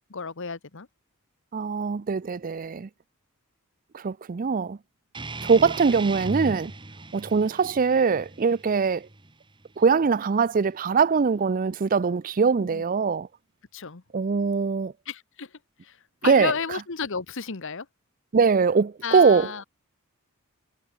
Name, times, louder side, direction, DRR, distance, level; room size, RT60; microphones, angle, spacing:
voice 1, 0.1-0.9 12.6-12.8 13.7-14.0 15.1-15.5 15.8-16.0 16.2-17.9 19.0-19.6, left 5 dB, 60° left, 1.2 m, -32 dB
voice 2, 1.5-2.9 3.9-4.8 5.4-6.7 7.1-9.1 9.8-13.3 14.1-14.9 16.2-16.5 18.3-19.5, right 5 dB, 40° right, 0.4 m, -22 dB
sound 1, 5.1-10.2, right 2 dB, 20° right, 1.7 m, -38 dB
head